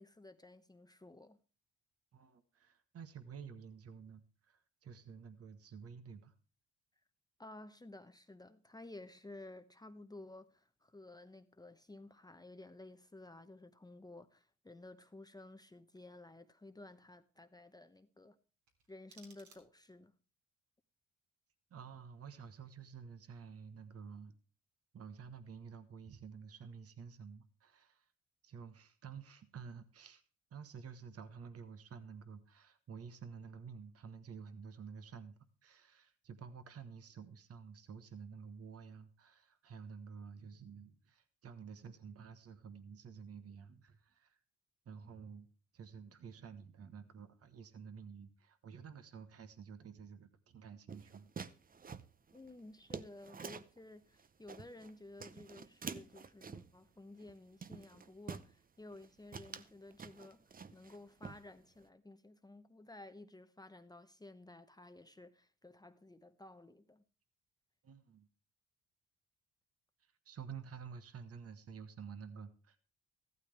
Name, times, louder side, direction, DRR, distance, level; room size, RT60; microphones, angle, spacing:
voice 1, 0.0-1.4 7.4-18.4 18.9-20.1 52.3-60.4 60.7-67.0, left 2 dB, 15° left, 0.9 m, -54 dB
voice 2, 2.1-6.3 21.7-24.3 24.9-28.1 28.4-30.2 30.5-44.4 44.8-45.5 45.7-51.3 67.8-68.3 70.0-72.8, right 6 dB, 50° right, 1.4 m, -51 dB
sound 1, 18.6-20.1, right 4 dB, 70° right, 3.4 m, -63 dB
sound 2, 50.9-53.8 54.2-54.9 55.2-56.8 57.2-57.3 57.6-58.5 58.9-59.1 59.3-61.0 61.2-61.8, right 5 dB, 30° right, 0.8 m, -48 dB
14.5 x 12.5 x 3.4 m
cardioid pair, 90°, 30 cm